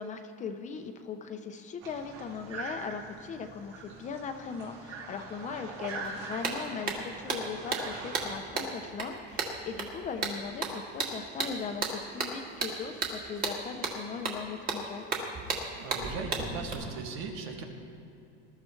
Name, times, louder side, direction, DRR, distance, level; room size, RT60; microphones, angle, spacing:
voice 1, 0.0-15.1, left 5 dB, 25° left, 6 dB, 0.6 m, -39 dB
sound 1, 1.8-8.4, right 4 dB, 50° right, 3.0 m, -43 dB
sound 2, 6.0-6.1 6.4-16.7, right 3 dB, 30° right, 1.8 m, -34 dB
voice 2, 15.8-17.6, right 4 dB, 70° right, 1 dB, 2.2 m, -38 dB
20.0 x 12.5 x 3.3 m, 2.7 s
cardioid pair, 155°, 30 cm